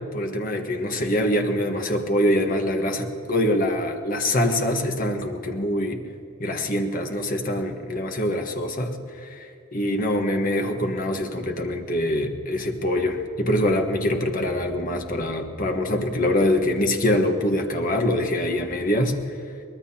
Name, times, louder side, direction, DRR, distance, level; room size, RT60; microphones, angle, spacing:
voice 1, 0.1-6.0 6.4-19.1, left 1 dB, 40° left, 4 dB, 1.3 m, -24 dB
23.5 x 19.0 x 2.9 m, 2.7 s
head